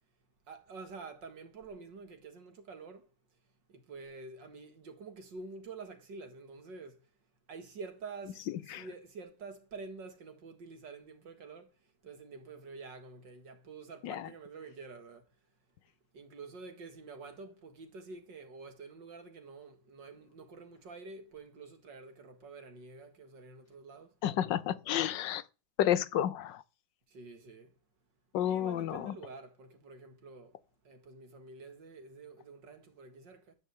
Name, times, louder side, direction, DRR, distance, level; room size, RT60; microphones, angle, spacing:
voice 1, 0.5-3.1 3.7-7.0 7.5-11.7 12.0-15.2 16.1-24.2 27.1-27.7 28.4-30.6 30.8-33.5, right 4 dB, 85° right, 2.7 m, -48 dB
voice 2, 24.2-25.4 25.8-26.6 28.3-29.1, left 11 dB, 80° left, 1.5 m, -31 dB
12.5 x 5.6 x 8.4 m
omnidirectional pair, 1.9 m